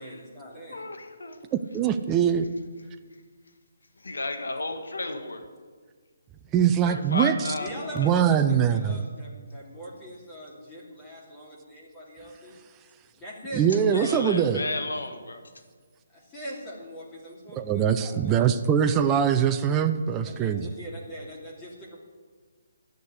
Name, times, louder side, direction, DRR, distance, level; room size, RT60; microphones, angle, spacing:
voice 1, 0.0-0.9 7.6-12.5 13.1-14.7 16.1-18.4 20.2-22.0, equal, 15° left, -5 dB, 2.9 m, -42 dB
voice 2, 0.7-1.4 4.0-5.4 6.8-8.2 13.9-15.4, left 2 dB, 90° left, 5 dB, 1.7 m, -33 dB
voice 3, 1.5-2.5 6.5-7.3 8.0-9.1 13.5-14.6 17.6-20.7, right 8 dB, 15° right, 7 dB, 0.5 m, -23 dB
11.5 x 6.6 x 9.6 m, 1.5 s
hypercardioid pair, 160°, 0 cm